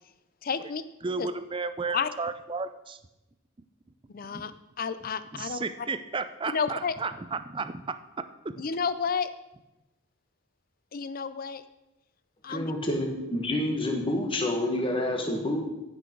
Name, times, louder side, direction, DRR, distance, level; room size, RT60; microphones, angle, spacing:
voice 1, 0.4-0.8 1.2-1.3 1.9-2.1 4.1-5.6 6.5-6.9 8.6-9.3 10.9-11.6 12.4-12.7, left 6 dB, 40° left, 13 dB, 0.5 m, -31 dB
voice 2, 1.0-3.0 4.3-4.5 5.3-8.6, right 4 dB, 25° right, 12 dB, 0.4 m, -33 dB
voice 3, 12.5-15.6, left 1 dB, 25° left, 2 dB, 1.5 m, -28 dB
15.0 x 6.3 x 4.6 m, 0.95 s
head